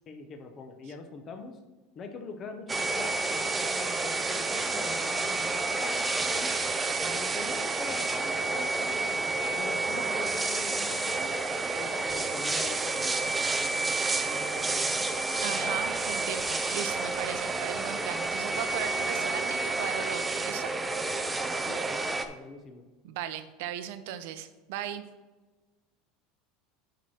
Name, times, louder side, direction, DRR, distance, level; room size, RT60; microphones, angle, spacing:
voice 1, 0.1-1.6 1.9-6.6 6.9-9.3 9.6-11.3 11.7-13.9 14.2-15.1 15.6-15.8 21.7-22.8, left 4 dB, 25° left, 6 dB, 0.8 m, -43 dB
sound 1, 2.7-22.2, right 3 dB, 10° right, 0.5 m, -30 dB
voice 2, 15.4-20.7 23.0-25.0, right 10 dB, 65° right, 11 dB, 0.7 m, -37 dB
9.2 x 4.8 x 4.4 m, 1.2 s
supercardioid pair, 165°, 0 cm